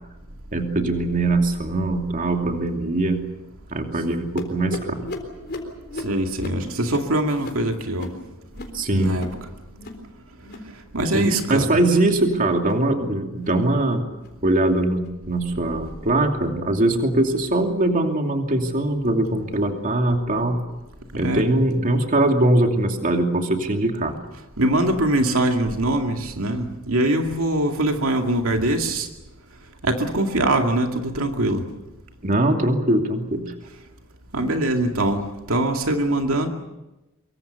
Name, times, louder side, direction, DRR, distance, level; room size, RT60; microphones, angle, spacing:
voice 1, 0.5-3.2 3.7-5.1 8.7-9.1 11.1-14.0 14.4-20.6 21.2-24.1 32.2-33.5, right 2 dB, 40° right, 3 dB, 2.7 m, -21 dB
sound 1, 4.4-9.4 9.7-10.1 10.3-10.7 11.0-11.4 11.8-12.1 12.5-12.9 13.3-13.6 14.1-14.4 15.0-15.2 15.8-16.0 16.7-16.8 17.5-17.6, left 2 dB, 50° left, 3.9 m, -37 dB
voice 2, 6.0-8.1 8.9-9.3 10.9-11.7 21.1-21.4 24.6-29.1 29.8-31.6 34.3-36.5, right 1 dB, 75° right, 3 dB, 2.4 m, -22 dB
24.5 x 23.5 x 7.0 m, 1.0 s
head